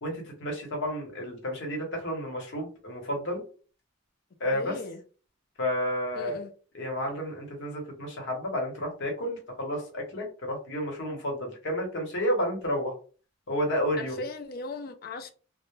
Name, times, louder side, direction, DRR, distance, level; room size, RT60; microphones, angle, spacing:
voice 1, 0.0-3.4 4.4-4.7 5.6-6.4 6.7-12.9 13.5-14.2, equal, 65° left, 0.9 m, -31 dB
voice 2, 4.5-5.0 6.1-6.5 14.0-15.3, left 3 dB, 50° left, 0.4 m, -38 dB
2.1 x 2.0 x 3.1 m
head